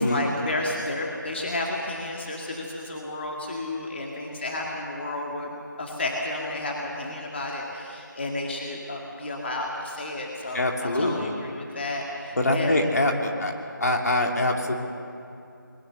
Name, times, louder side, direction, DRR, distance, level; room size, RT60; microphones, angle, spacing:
voice 1, 0.0-5.5 5.8-12.8, left 2 dB, 30° left, -1 dB, 2.0 m, -31 dB
voice 2, 10.5-11.3 12.4-13.5 13.8-14.7, left 1 dB, 50° left, 2 dB, 2.5 m, -24 dB
21.0 x 20.5 x 6.9 m, 2.6 s
figure-of-eight pair, 165°, 11 cm